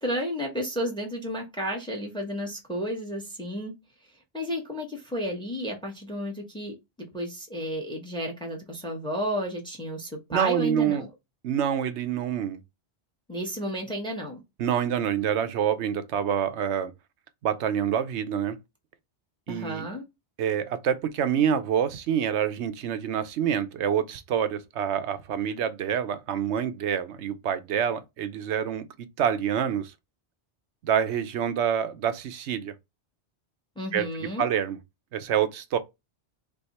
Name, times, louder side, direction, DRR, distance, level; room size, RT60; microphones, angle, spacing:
voice 1, 0.0-3.7 4.3-6.7 7.1-11.1 13.3-14.4 19.5-20.0 33.8-34.5, equal, 5° left, 1.1 m, -32 dB
voice 2, 10.3-11.1 11.4-12.6 14.6-16.9 17.4-18.6 19.5-19.9 20.4-28.9 29.2-29.9 30.8-32.7 33.9-34.8 35.1-35.8, right 8 dB, 80° right, 0.9 m, -27 dB
3.5 x 3.4 x 4.1 m
omnidirectional pair, 1.1 m